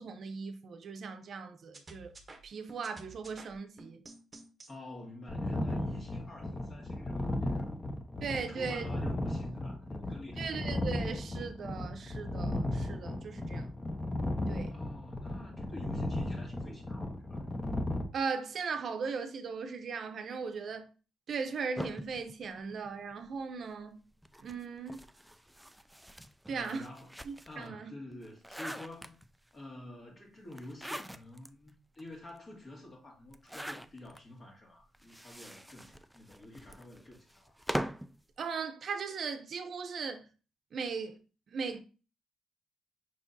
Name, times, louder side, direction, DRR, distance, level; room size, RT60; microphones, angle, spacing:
voice 1, 0.0-2.1 2.4-4.0 8.2-8.9 10.4-13.7 14.5-14.7 18.1-20.9 21.3-24.0 24.4-25.0 26.5-26.9 27.2-27.9 38.4-40.3 40.7-41.2 41.5-41.8, right 5 dB, 55° right, 0.7 m, -38 dB
sound 1, 1.7-4.7, right 2 dB, 30° right, 0.9 m, -52 dB
voice 2, 4.7-7.8 8.5-10.4 14.7-17.4 26.5-27.2 27.5-29.2 29.5-37.5, left 1 dB, 40° left, 1.9 m, -49 dB
sound 2, 5.3-18.0, left 1 dB, 20° left, 0.9 m, -35 dB
sound 3, 21.8-23.4 24.2-27.7 28.1-29.5 30.5-31.5 32.0-32.1 32.3-32.4 33.3-34.2 34.9-38.2, equal, 5° right, 0.3 m, -42 dB
5.4 x 3.6 x 2.7 m
cardioid pair, 90°, 0 cm